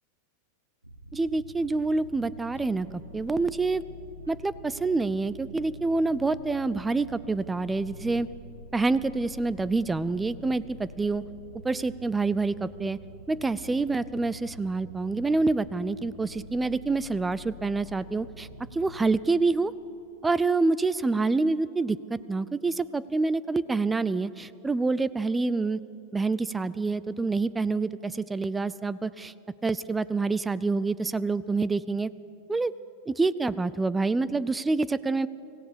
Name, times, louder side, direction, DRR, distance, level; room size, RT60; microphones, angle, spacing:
sound 1, 0.8-19.1, equal, 85° right, 1.2 m, -46 dB
voice 1, 1.1-2.9 3.1-3.8 4.3-8.3 8.7-11.2 11.6-13.0 13.3-19.7 20.2-25.8 26.1-29.3 29.6-32.1 32.5-32.7 33.1-35.3, right 3 dB, 10° right, 18 dB, 0.4 m, -27 dB
25.0 x 16.0 x 6.8 m, 2.9 s
figure-of-eight pair, 90°, 0 cm